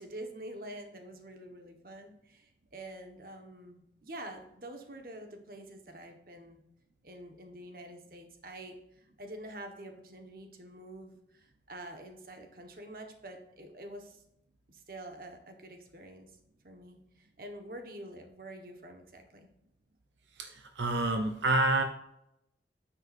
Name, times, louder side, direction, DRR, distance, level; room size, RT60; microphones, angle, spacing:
voice 1, 0.0-6.6 7.0-14.2 14.7-16.3 16.6-19.5, right 1 dB, 55° right, 4 dB, 1.4 m, -47 dB
voice 2, 20.4-21.8, right 2 dB, 85° right, 5 dB, 0.8 m, -28 dB
9.6 x 7.9 x 2.6 m, 0.79 s
head